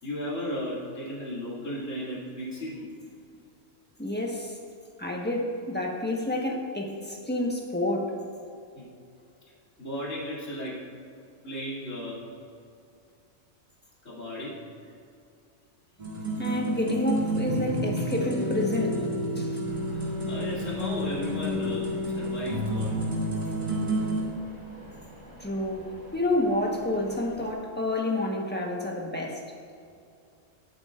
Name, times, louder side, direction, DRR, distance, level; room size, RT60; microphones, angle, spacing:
voice 1, 0.0-2.9 8.7-8.9 9.8-10.9 11.4-12.3 14.0-14.6 19.9-22.9, equal, 65° left, -7 dB, 3.2 m, -35 dB
voice 2, 4.0-4.6 5.0-8.2 16.4-19.1 19.4-19.6 25.4-29.5, left 1 dB, 10° left, -1 dB, 1.2 m, -29 dB
sound 1, 16.0-24.2, equal, 35° right, 2.5 m, -30 dB
sound 2, 19.6-27.5, left 1 dB, 35° left, 3.0 m, -48 dB
20.0 x 8.6 x 2.5 m, 2.5 s
omnidirectional pair, 1.4 m